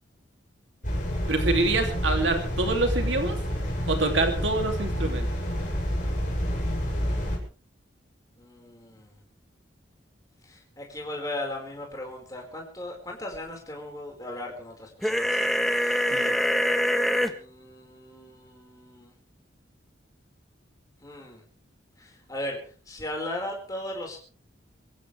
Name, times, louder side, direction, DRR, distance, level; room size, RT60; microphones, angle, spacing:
sound 1, 0.8-7.4, equal, 45° left, 6.8 m, -28 dB
voice 1, 1.3-3.4 3.9-5.3 16.1-16.4, right 3 dB, 75° right, 5 dB, 2.9 m, -26 dB
voice 2, 8.4-9.2 10.5-15.4 15.8-16.2 17.2-19.1 21.0-21.4 22.0-22.6 22.9-24.2, left 1 dB, 20° left, 0 dB, 5.1 m, -37 dB
sound 2, 15.0-17.3, equal, ahead, 1.3 m, -24 dB
24.5 x 15.0 x 3.5 m, 0.39 s
head